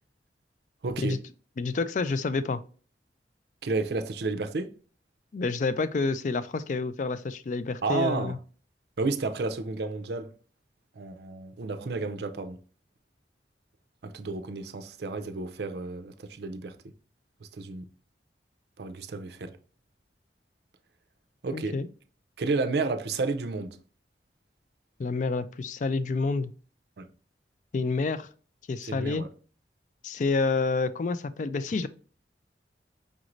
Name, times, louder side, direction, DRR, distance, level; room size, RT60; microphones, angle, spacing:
voice 1, 0.8-1.2 3.6-4.7 7.8-8.4 9.0-10.3 11.0-12.6 14.0-16.8 17.4-17.9 18.8-19.5 21.4-21.8 22.4-23.8 27.0-27.1 28.8-29.3, right 3 dB, 65° right, 0.5 m, -31 dB
voice 2, 1.6-2.6 5.3-8.4 21.5-21.9 25.0-26.5 27.7-28.3 28.7-29.2 30.0-31.9, left 3 dB, 45° left, 0.3 m, -28 dB
5.0 x 2.6 x 3.0 m
head